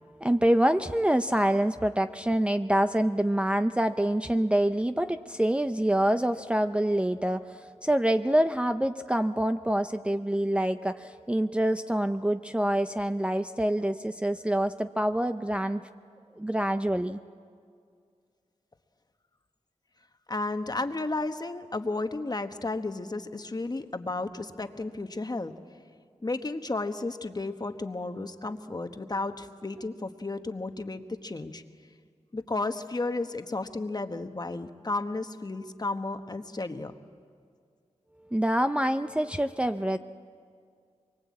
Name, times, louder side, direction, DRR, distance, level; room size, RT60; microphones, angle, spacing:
voice 1, 0.0-15.8 16.3-17.2 38.3-40.0, right 1 dB, 10° right, 7 dB, 0.6 m, -26 dB
voice 2, 20.3-25.5 26.2-31.6 32.3-36.9, left 2 dB, 35° left, 8 dB, 1.2 m, -33 dB
24.5 x 23.0 x 8.5 m, 2.2 s
wide cardioid pair, 80°, 12 cm